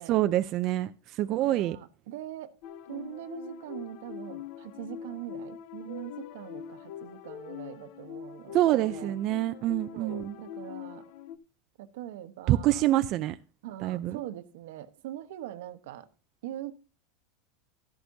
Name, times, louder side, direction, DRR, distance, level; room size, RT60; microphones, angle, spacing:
voice 1, 0.1-1.8 8.5-10.4 12.5-13.4 13.8-14.2, right 14 dB, 45° right, 0.5 m, -26 dB
voice 2, 1.4-2.5 2.9-9.2 9.9-11.0 11.8-12.9 13.6-16.1 16.4-16.7, right 13 dB, 75° right, 1.1 m, -42 dB
sound 1, 2.6-11.4, left 8 dB, 60° left, 1.0 m, -43 dB
13.0 x 11.0 x 2.8 m
supercardioid pair, 130°, 0 cm